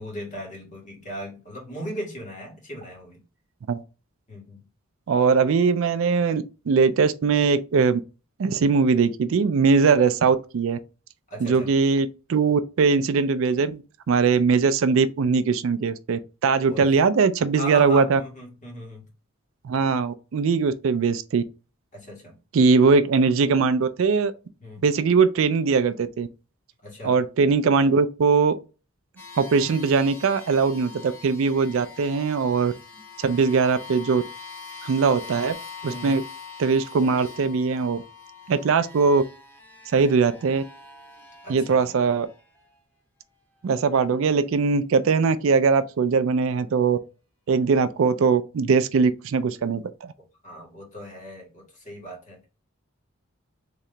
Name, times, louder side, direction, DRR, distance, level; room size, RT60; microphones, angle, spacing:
voice 1, 0.0-3.2 4.3-4.6 11.3-11.7 16.7-16.9 17.6-19.1 21.9-22.3 24.6-24.9 26.8-27.2 32.9-33.0 35.8-36.2 41.4-41.9 50.4-52.5, equal, 35° left, 1.5 m, -37 dB
voice 2, 5.1-8.0 8.4-10.8 11.4-13.8 14.1-18.2 19.6-21.4 22.5-24.3 24.8-26.3 27.0-28.5 29.4-32.7 33.2-34.2 34.8-35.5 35.8-36.2 36.6-38.0 38.5-39.2 39.9-40.6 41.5-42.3 43.6-47.0 47.5-50.1, right 5 dB, 65° right, 0.4 m, -21 dB
sound 1, 29.2-42.8, left 5 dB, 10° left, 0.8 m, -43 dB
3.8 x 2.8 x 3.2 m
head